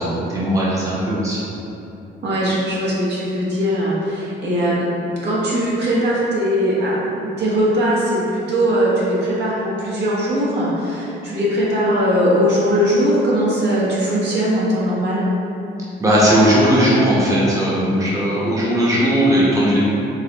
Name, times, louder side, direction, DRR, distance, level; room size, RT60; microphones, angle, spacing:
voice 1, 0.0-1.4 16.0-19.8, equal, 15° right, -8 dB, 1.1 m, -17 dB
voice 2, 2.2-4.9 5.2-15.3, equal, 60° right, -7 dB, 1.3 m, -20 dB
4.7 x 2.9 x 3.5 m, 2.9 s
cardioid pair, 90°, 20 cm